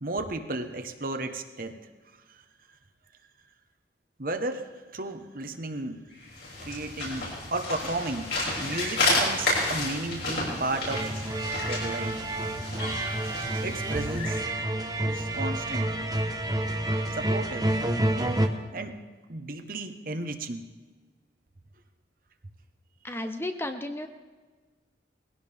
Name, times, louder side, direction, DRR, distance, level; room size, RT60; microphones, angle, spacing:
voice 1, 0.0-1.8 4.2-6.0 6.6-8.3 8.6-11.1 11.7-12.1 13.6-14.5 15.0-15.9 17.1-17.7 18.7-19.0 19.3-20.7, right 2 dB, 50° right, 7 dB, 1.1 m, -33 dB
sound 1, 6.2-14.5, left 2 dB, 75° left, 6.5 m, -31 dB
sound 2, 10.9-18.5, right 1 dB, 20° right, 0.9 m, -29 dB
voice 2, 23.0-24.1, left 1 dB, 15° left, 7 dB, 0.7 m, -33 dB
20.5 x 16.5 x 3.5 m, 1.4 s
head